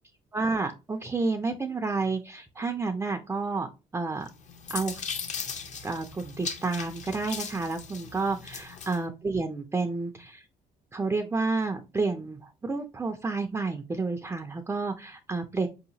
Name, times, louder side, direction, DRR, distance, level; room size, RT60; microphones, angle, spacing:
voice 1, 0.3-3.7 3.9-4.3 4.7-5.0 5.8-10.5 10.9-15.7, right 3 dB, 15° right, 5 dB, 0.4 m, -30 dB
sound 1, 4.3-9.0, left 5 dB, 45° left, 0.7 m, -38 dB
4.8 x 2.8 x 2.7 m, 0.28 s
cardioid pair, 110°, 17 cm